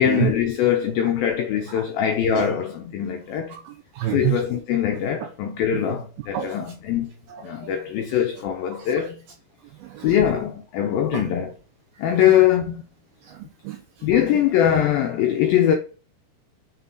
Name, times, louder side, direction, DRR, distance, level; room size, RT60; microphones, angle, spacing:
voice 1, 0.0-3.6 4.1-7.1 7.4-9.2 10.0-11.5 12.0-12.8 14.0-15.7, left 10 dB, 85° left, 2.0 m, -22 dB
voice 2, 3.5-4.4 5.2-5.3 5.7-6.0 6.3-6.6 7.3-7.7 8.7-8.9 9.8-10.2 11.1-11.2 13.2-14.1, right 14 dB, 90° right, 2.1 m, -29 dB
7.3 x 4.1 x 3.8 m
omnidirectional pair, 5.1 m